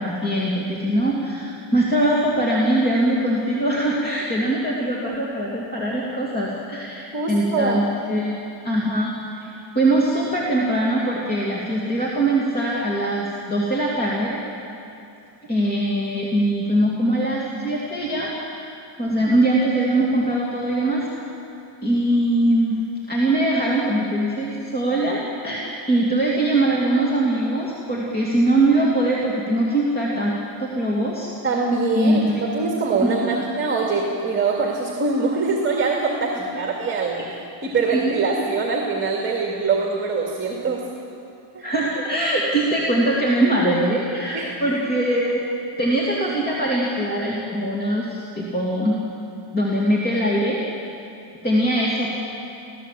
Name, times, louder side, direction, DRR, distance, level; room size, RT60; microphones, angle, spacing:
voice 1, 0.0-9.1 9.4-9.5 9.7-14.4 15.5-18.7 19.0-21.1 21.8-22.8 23.1-30.3 30.6-31.3 32.0-32.4 33.0-33.4 37.9-38.3 41.6-45.4 45.8-49.0 49.5-50.6 51.4-52.1, right 1 dB, 20° left, -5 dB, 2.7 m, -22 dB
voice 2, 7.1-7.8 31.4-37.2 37.6-40.8 41.5-41.7 44.3-44.5, right 4 dB, 25° right, -1 dB, 2.3 m, -23 dB
26.5 x 16.5 x 7.7 m, 2.7 s
cardioid pair, 160°, 48 cm